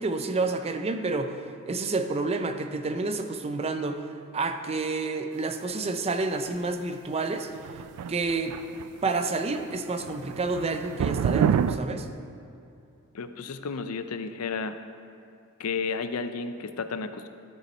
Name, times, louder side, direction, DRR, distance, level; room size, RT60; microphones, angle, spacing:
voice 1, 0.0-7.5 8.1-8.6 9.0-12.1, right 3 dB, 30° right, 7 dB, 0.5 m, -29 dB
sound 1, 7.6-9.1 9.4-9.7 10.0-11.8, right 8 dB, 90° right, 0.3 m, -27 dB
voice 2, 13.1-14.8 15.6-17.3, left 5 dB, 75° left, 10 dB, 0.5 m, -32 dB
12.5 x 5.4 x 4.3 m, 2.6 s
head